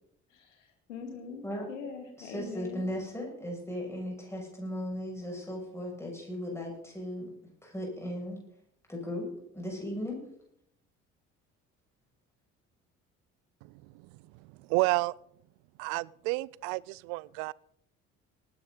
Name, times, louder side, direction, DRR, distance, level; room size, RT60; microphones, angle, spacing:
voice 1, 0.3-2.8, left 5 dB, 70° left, 2.3 m, -43 dB
voice 2, 2.2-7.3 7.6-8.4 8.9-10.2, left 1 dB, 5° left, 6.7 m, -37 dB
voice 3, 14.7-15.1 15.8-17.5, right 24 dB, 55° right, 0.5 m, -30 dB
19.0 x 10.5 x 4.0 m
figure-of-eight pair, 50°, 37 cm